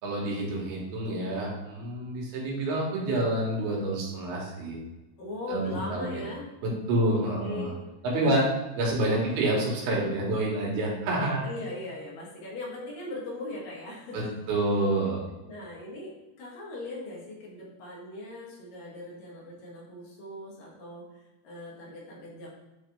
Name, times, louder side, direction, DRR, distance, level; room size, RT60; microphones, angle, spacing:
voice 1, 0.0-4.8 5.5-6.2 6.6-7.7 8.0-8.4 8.8-11.4 14.1-15.2, right 1 dB, 85° right, -3 dB, 3.5 m, -28 dB
voice 2, 5.2-6.5 7.0-7.7 8.2-8.4 9.2-9.4 11.4-14.3 15.5-16.1 16.4-22.5, left 2 dB, 65° left, -4 dB, 3.0 m, -39 dB
9.0 x 3.6 x 3.5 m, 1.0 s
omnidirectional pair, 4.5 m